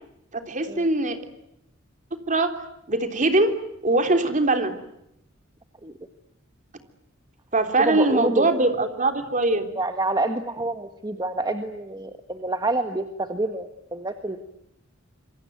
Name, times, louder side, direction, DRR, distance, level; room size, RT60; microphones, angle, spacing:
voice 1, 0.3-1.2 2.3-2.5 2.9-3.5 3.8-4.7 7.5-9.7, right 2 dB, 40° right, 7 dB, 3.5 m, -22 dB
voice 2, 7.8-8.5 9.8-14.4, right 2 dB, 20° right, 7 dB, 1.6 m, -27 dB
27.0 x 23.5 x 9.4 m, 0.80 s
head